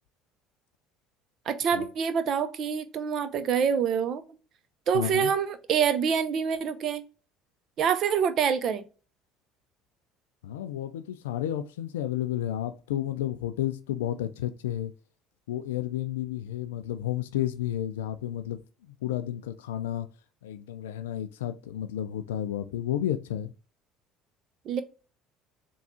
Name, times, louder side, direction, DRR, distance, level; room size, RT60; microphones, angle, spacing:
voice 1, 1.5-4.2 4.9-7.0 7.8-8.8 24.7-24.8, right 7 dB, 55° right, 0.5 m, -26 dB
voice 2, 4.9-5.3 10.4-14.9 15.5-18.6 19.0-20.1 20.4-23.5, left 12 dB, 90° left, 0.4 m, -31 dB
3.6 x 2.3 x 4.2 m
hypercardioid pair, 70°, 0 cm